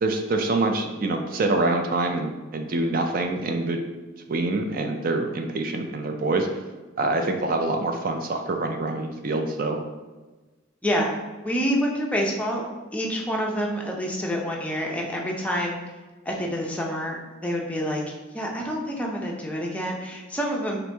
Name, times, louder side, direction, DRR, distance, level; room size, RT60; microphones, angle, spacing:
voice 1, 0.0-3.8 4.3-6.5 7.0-9.8, right 2 dB, 50° right, 4 dB, 0.4 m, -25 dB
voice 2, 10.8-11.1 11.4-12.6 12.9-15.8 16.3-17.2 17.4-18.0 18.3-20.8, equal, 5° left, -1 dB, 0.5 m, -27 dB
4.3 x 2.6 x 3.3 m, 1.2 s
head